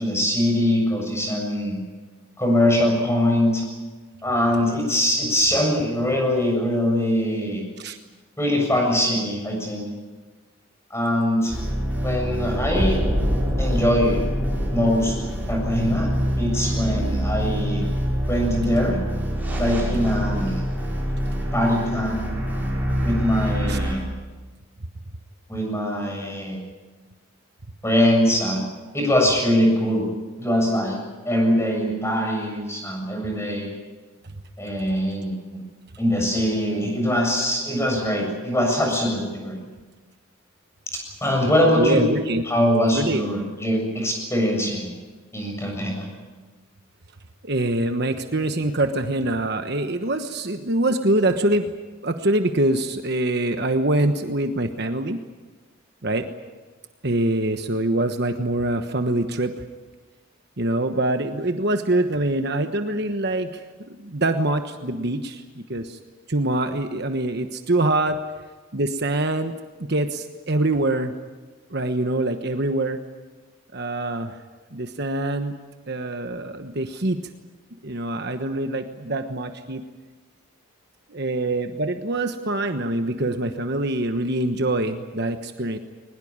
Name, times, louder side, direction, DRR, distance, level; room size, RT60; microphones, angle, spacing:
voice 1, 0.0-1.8 2.4-3.6 4.2-7.6 8.4-9.8 10.9-11.5 12.0-13.0 13.6-14.2 14.7-15.1 15.5-16.1 16.4-17.8 18.3-19.0 19.6-20.6 21.5-22.3 23.0-24.0 25.5-26.6 27.8-28.6 28.9-30.1 30.4-31.0 31.3-33.7 34.6-35.6 36.0-39.6 41.2-42.1 42.5-44.9 45.3-46.1, equal, 15° left, 1 dB, 7.4 m, -22 dB
sound 1, 11.5-23.9, equal, 10° right, 7.2 m, -25 dB
voice 2, 41.8-42.4 42.9-43.2 47.4-51.7 52.0-55.2 56.0-56.3 57.0-59.5 60.6-63.6 64.0-66.0 66.3-68.2 68.7-69.5 69.8-71.1 71.7-73.0 73.7-74.4 74.7-75.6 75.9-77.2 77.8-79.8 81.1-85.8, right 2 dB, 50° right, 7 dB, 1.2 m, -24 dB
22.0 x 20.5 x 8.8 m, 1.3 s
head